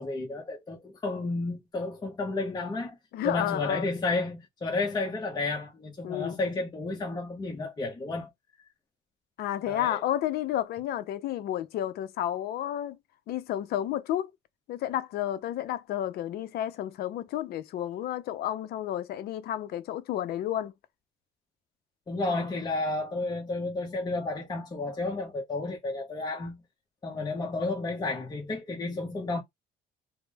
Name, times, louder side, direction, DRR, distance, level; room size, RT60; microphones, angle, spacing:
voice 1, 0.0-3.0 3.2-8.3 9.7-10.0 22.1-26.6 27.0-29.4, left 2 dB, 25° left, 0.8 m, -32 dB
voice 2, 3.1-3.9 6.0-6.4 9.4-13.0 13.3-14.3 14.7-20.7, left 12 dB, 65° left, 0.5 m, -31 dB
3.0 x 2.0 x 3.3 m
cardioid pair, 110°, 17 cm